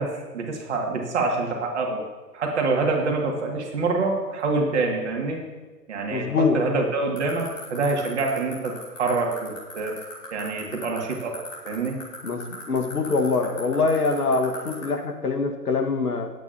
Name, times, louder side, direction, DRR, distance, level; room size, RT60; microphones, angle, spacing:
voice 1, 0.0-2.0 2.3-5.4 5.9-10.0 10.3-11.4 11.6-12.0, right 3 dB, 45° right, 1 dB, 2.2 m, -26 dB
voice 2, 6.1-6.6 12.2-16.3, left 4 dB, 70° left, 5 dB, 1.6 m, -24 dB
sound 1, 7.2-14.8, left 8 dB, 25° left, 3.0 m, -38 dB
20.0 x 8.8 x 2.8 m, 1.3 s
figure-of-eight pair, 135°, 48 cm